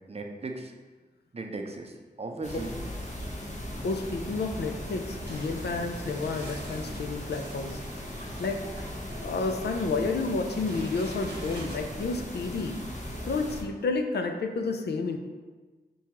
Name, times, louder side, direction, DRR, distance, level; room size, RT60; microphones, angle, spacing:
voice 1, 0.1-0.7 1.3-2.7, right 3 dB, 35° right, 3 dB, 0.5 m, -37 dB
sound 1, 2.4-13.6, left 1 dB, 45° left, 0.8 m, -38 dB
voice 2, 3.8-7.8 8.4-8.7 9.2-12.8 13.3-15.2, left 3 dB, 75° left, 6 dB, 0.4 m, -30 dB
sound 2, 5.2-11.8, right 1 dB, 90° right, 0.9 m, -45 dB
5.9 x 2.3 x 2.8 m, 1.3 s
cardioid pair, 50°, 17 cm